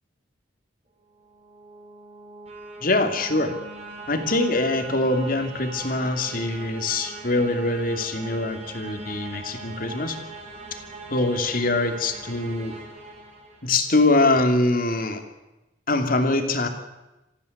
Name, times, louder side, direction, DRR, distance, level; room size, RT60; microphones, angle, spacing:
sound 1, 1.0-14.0, right 3 dB, 35° right, 6.4 m, -41 dB
voice 1, 2.8-3.5 4.1-10.2 11.1-12.7 13.6-15.2 15.9-16.7, left 2 dB, 50° left, 6 dB, 2.8 m, -23 dB
26.0 x 15.0 x 9.6 m, 1.0 s
head